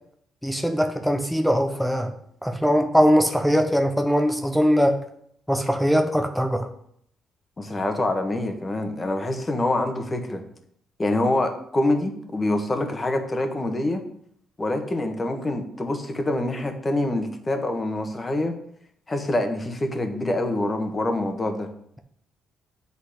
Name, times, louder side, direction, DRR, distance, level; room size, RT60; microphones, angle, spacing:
voice 1, 0.4-2.1 2.4-5.0 5.5-6.7, equal, ahead, 5 dB, 0.8 m, -21 dB
voice 2, 7.6-10.4 11.0-14.0 14.6-18.6 19.1-21.7, left 1 dB, 25° left, 5 dB, 1.3 m, -25 dB
8.0 x 4.1 x 6.6 m, 0.69 s
cardioid pair, 90°, 0 cm